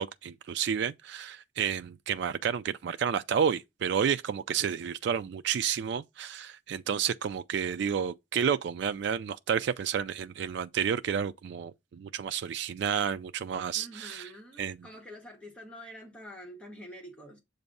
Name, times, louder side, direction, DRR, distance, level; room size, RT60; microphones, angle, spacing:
voice 1, 0.0-14.3 14.6-14.8, right 7 dB, 60° right, 0.3 m, -30 dB
voice 2, 13.7-17.4, equal, 5° left, 1.2 m, -47 dB
6.9 x 2.6 x 5.3 m
head